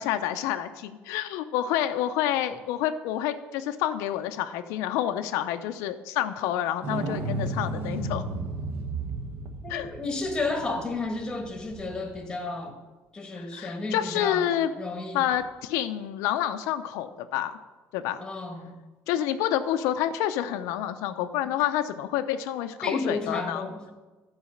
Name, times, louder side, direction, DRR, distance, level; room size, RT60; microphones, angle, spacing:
voice 1, 0.0-8.2 9.7-9.9 13.5-14.7 15.1-17.6 17.9-18.2 19.1-23.7, left 11 dB, 90° left, 9 dB, 0.5 m, -28 dB
sound 1, 6.8-12.2 15.3-15.4, right 2 dB, 45° right, 1.0 m, -34 dB
voice 2, 9.6-12.7 13.1-14.5 14.8-15.2 18.2-18.8 22.8-23.8, left 2 dB, 15° left, 3 dB, 1.4 m, -32 dB
10.5 x 4.8 x 6.4 m, 1.2 s
cardioid pair, 155°, 5 cm